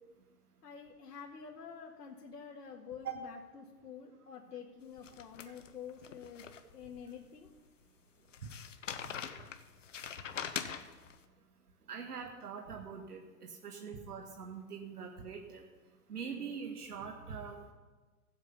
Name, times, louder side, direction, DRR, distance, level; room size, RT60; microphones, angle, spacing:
voice 1, 0.6-6.4 6.7-7.5, left 7 dB, 80° left, -1 dB, 1.7 m, -48 dB
sound 1, 5.0-7.0 7.4-7.5 8.3-11.2, left 8 dB, 50° left, 0.9 m, -43 dB
voice 2, 11.9-15.7 16.1-17.6, right 6 dB, 75° right, 2 dB, 1.8 m, -43 dB
16.0 x 8.0 x 5.4 m, 1.3 s
hypercardioid pair, 175°, 47 cm